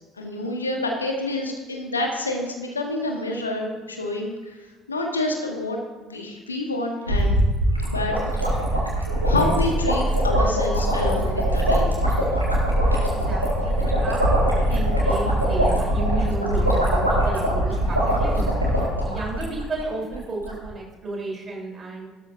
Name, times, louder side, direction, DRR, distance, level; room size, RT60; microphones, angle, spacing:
voice 1, 0.1-7.4 7.9-8.1 9.2-11.9, left 2 dB, 80° left, 2 dB, 1.3 m, -28 dB
sound 1, 7.1-19.8 20.1-20.2 20.4-20.7, equal, 90° right, 2.0 m, -22 dB
voice 2, 13.0-18.5 19.0-22.1, right 3 dB, 30° right, -2 dB, 3.7 m, -32 dB
14.5 x 12.5 x 2.7 m, 1.3 s
figure-of-eight pair, 55°, 0 cm